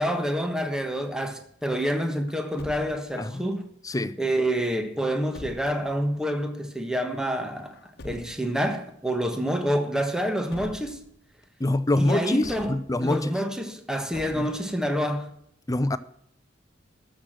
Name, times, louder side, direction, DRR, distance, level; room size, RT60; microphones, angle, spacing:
voice 1, 0.0-3.7 4.2-7.8 8.0-11.0 12.0-15.3, equal, 5° right, 1.3 m, -27 dB
Truck, 2.3-3.2 5.1-5.9 7.6-8.6 10.2-11.2 12.4-13.2 14.1-15.0, left 1 dB, 60° left, 1.2 m, -44 dB
voice 2, 3.8-4.2 11.6-13.3 14.3-14.5 15.7-16.0, left 1 dB, 20° left, 0.6 m, -25 dB
13.0 x 6.4 x 7.6 m
head